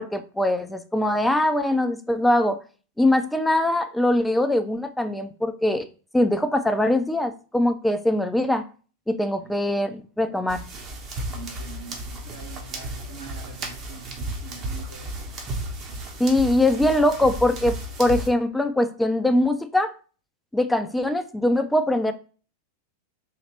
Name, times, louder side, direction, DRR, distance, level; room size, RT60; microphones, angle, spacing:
voice 1, 0.0-2.6 3.0-5.9 6.1-8.6 9.1-10.6 16.2-19.9 20.5-22.1, left 1 dB, 5° left, 8 dB, 0.4 m, -22 dB
voice 2, 9.4-9.9 11.3-15.4, right 5 dB, 75° right, -3 dB, 1.7 m, -44 dB
sound 1, 10.5-18.3, right 1 dB, 35° right, 0.9 m, -34 dB
4.1 x 2.8 x 3.0 m, 0.37 s
figure-of-eight pair, 90°, 0 cm